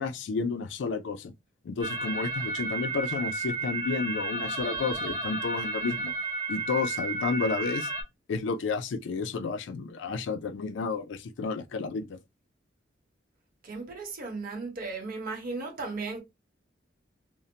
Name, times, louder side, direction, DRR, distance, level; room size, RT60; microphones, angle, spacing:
voice 1, 0.0-1.3 1.6-6.1 6.5-7.9 8.3-12.2, left 4 dB, 70° left, 0.4 m, -31 dB
sound 1, 1.8-8.0, right 2 dB, 20° right, 0.7 m, -32 dB
voice 2, 13.6-16.2, right 3 dB, 50° right, 1.0 m, -36 dB
2.6 x 2.0 x 2.7 m
head